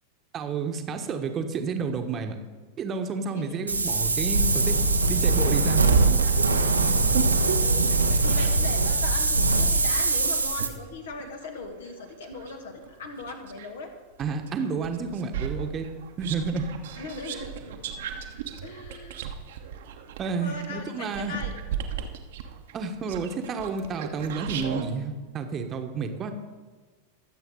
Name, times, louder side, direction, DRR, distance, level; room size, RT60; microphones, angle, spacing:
voice 1, 0.3-2.4 2.8-4.8 5.1-5.9 14.2-15.9 16.2-16.7 20.2-21.3 22.7-26.3, right 5 dB, 25° right, 6 dB, 1.3 m, -30 dB
Wind, 3.7-10.7, right 3 dB, 80° right, 1.1 m, -22 dB
sound 1, 5.8-8.8 9.3-13.7 14.2-24.9, right 8 dB, 55° right, 1.2 m, -34 dB
voice 2, 7.6-7.9 8.2-13.9 16.9-17.9 18.6-19.3 20.4-21.5, left 3 dB, 60° left, 4 dB, 1.9 m, -39 dB
23.0 x 7.8 x 3.9 m, 1.4 s
figure-of-eight pair, 90°, 0 cm